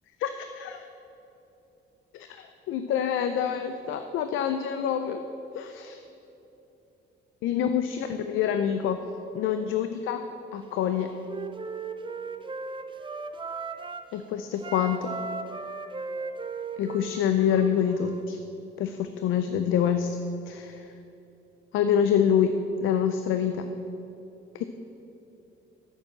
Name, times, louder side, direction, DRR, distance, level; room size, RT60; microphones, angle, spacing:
voice 1, 0.2-0.9 2.1-5.2 5.5-6.0 7.4-9.0 9.3-10.2 10.5-11.1 14.1-15.1 16.8-18.4 18.8-20.2 20.5-20.9 21.7-23.7 24.5-24.6, left 8 dB, 85° left, 8 dB, 0.5 m, -26 dB
Wind instrument woodwind instrument, 10.7-14.1 14.6-18.2, right 4 dB, 25° right, 0.6 m, -37 dB
8.4 x 7.4 x 7.7 m, 3.0 s
cardioid pair, 90°, 20 cm